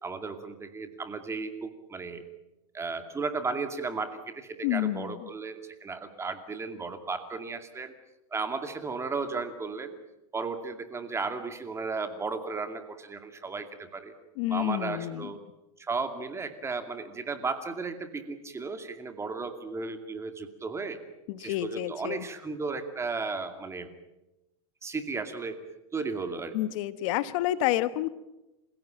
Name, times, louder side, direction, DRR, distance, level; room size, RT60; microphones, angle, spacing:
voice 1, 0.0-2.2 2.7-7.9 8.3-10.0 10.3-14.1 14.5-15.4 15.8-21.0 21.4-23.9 24.8-25.6 25.9-26.6, right 4 dB, 15° right, 8 dB, 2.4 m, -35 dB
voice 2, 4.6-5.3 14.4-15.3 21.3-22.3 26.5-28.1, left 14 dB, 60° left, 14 dB, 1.2 m, -29 dB
27.5 x 16.5 x 9.0 m, 0.97 s
supercardioid pair, 135°, 19 cm